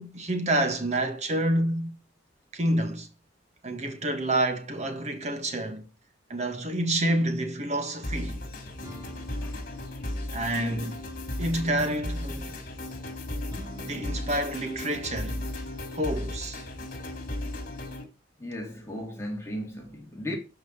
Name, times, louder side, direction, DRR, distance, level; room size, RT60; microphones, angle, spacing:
voice 1, 0.0-2.0 2.5-3.1 3.6-5.9 6.3-8.4 10.3-11.0 11.4-12.6 13.8-15.4 15.9-16.6, right 1 dB, 40° right, 1.9 m, -28 dB
sound 1, 8.0-18.0, left 1 dB, 50° left, 3.1 m, -35 dB
sound 2, 8.8-10.8 13.5-15.6, right 1 dB, 20° right, 3.0 m, -49 dB
voice 2, 10.5-10.9 18.4-20.4, left 1 dB, 15° left, 3.2 m, -36 dB
12.5 x 4.9 x 6.9 m
head